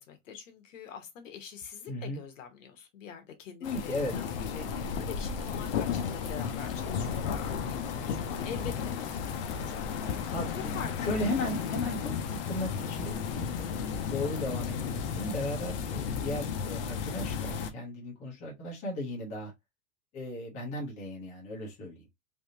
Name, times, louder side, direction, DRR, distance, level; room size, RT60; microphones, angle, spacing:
voice 1, 0.0-11.1 12.2-12.3, left 7 dB, 60° left, 1.1 m, -45 dB
voice 2, 1.9-2.2 3.6-4.1 10.3-10.7 11.0-13.8 14.1-19.5 20.1-22.1, left 1 dB, 15° left, 0.8 m, -36 dB
sound 1, 3.6-17.7, left 6 dB, 40° left, 0.5 m, -34 dB
3.4 x 2.7 x 2.7 m
supercardioid pair, 165°, 43 cm